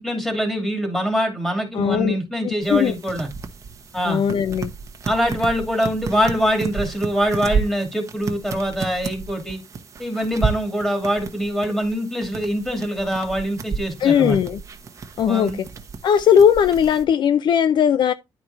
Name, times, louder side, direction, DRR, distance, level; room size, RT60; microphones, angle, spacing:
voice 1, 0.0-3.3 3.9-4.2 5.0-9.6 10.0-14.4 15.2-15.6, equal, 5° left, 2.6 m, -23 dB
voice 2, 1.7-2.2 2.4-2.9 4.0-4.7 14.0-14.6 15.2-15.7 16.0-18.1, left 8 dB, 55° left, 0.5 m, -18 dB
sound 1, 2.6-17.0, right 5 dB, 35° right, 1.1 m, -32 dB
10.5 x 4.7 x 4.1 m
wide cardioid pair, 165°, 9 cm